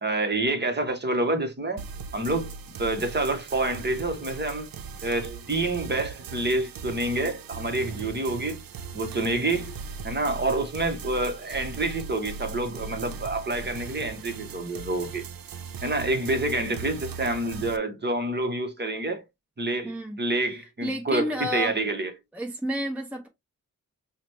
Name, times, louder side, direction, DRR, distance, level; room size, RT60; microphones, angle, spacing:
voice 1, 0.0-1.8 2.1-2.5 2.8-4.7 5.0-8.6 8.9-9.7 10.0-15.2 15.8-19.2 19.6-22.1, right 2 dB, 30° right, 0.9 m, -28 dB
sound 1, 1.8-17.8, right 5 dB, 85° right, 0.6 m, -39 dB
voice 2, 19.8-20.2 20.8-21.7 22.3-23.3, equal, 5° right, 0.7 m, -30 dB
5.7 x 2.1 x 3.1 m
wide cardioid pair, 165°, 34 cm